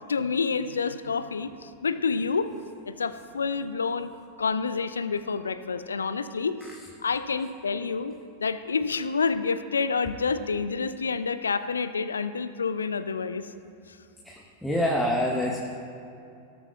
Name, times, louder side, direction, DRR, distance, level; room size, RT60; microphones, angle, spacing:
voice 1, 0.1-2.5 2.9-4.1 4.4-6.6 7.0-8.1 8.4-13.5, left 5 dB, 70° left, 13 dB, 0.5 m, -28 dB
voice 2, 14.2-15.6, left 1 dB, 5° left, -2 dB, 1.2 m, -27 dB
17.5 x 12.5 x 2.4 m, 2.6 s
figure-of-eight pair, 90°, 0 cm